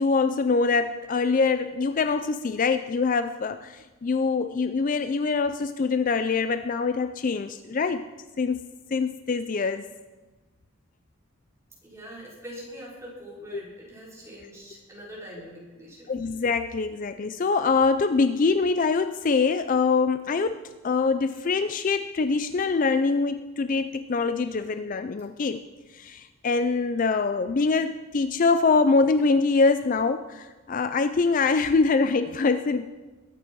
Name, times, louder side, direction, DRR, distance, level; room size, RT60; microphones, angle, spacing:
voice 1, 0.0-8.1 8.4-8.7 8.9-9.9 13.5-13.6 16.1-25.6 25.9-32.9, left 4 dB, 35° left, 11 dB, 0.4 m, -24 dB
voice 2, 11.8-16.1, equal, 15° right, -6 dB, 4.7 m, -43 dB
21.5 x 9.0 x 4.6 m, 1.2 s
head